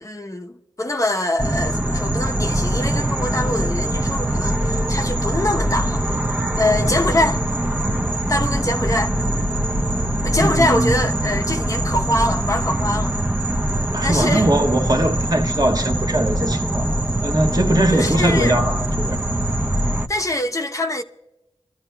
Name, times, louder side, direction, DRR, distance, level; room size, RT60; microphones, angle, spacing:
voice 1, 0.0-6.0 6.6-7.4 8.3-9.1 10.2-13.1 14.0-14.5 17.9-18.6 20.1-21.0, left 1 dB, 30° left, 0.8 m, -23 dB
sound 1, 1.4-20.1, right 1 dB, 15° right, 0.8 m, -22 dB
voice 2, 10.4-10.9 13.9-16.9 17.2-19.2, right 1 dB, 35° right, 1.4 m, -20 dB
27.0 x 13.0 x 2.3 m
cardioid pair, 45°, 11 cm